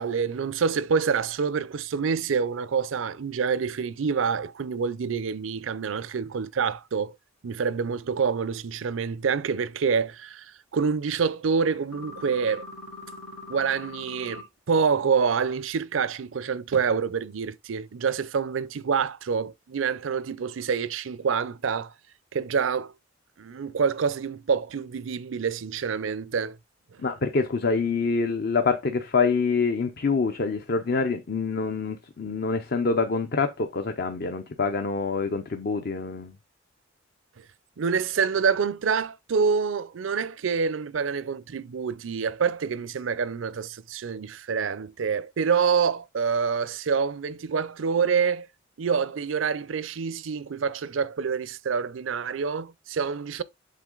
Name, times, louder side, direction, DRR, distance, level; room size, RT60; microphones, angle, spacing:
voice 1, 0.0-7.2 7.4-12.6 13.5-21.9 22.3-22.9 23.4-26.6 37.8-48.5 48.8-53.4, right 6 dB, 80° right, 0.5 m, -27 dB
sound 1, 11.9-14.4, left 2 dB, 85° left, 2.4 m, -41 dB
voice 2, 27.0-36.3, left 4 dB, 55° left, 0.7 m, -26 dB
7.6 x 3.8 x 3.8 m
head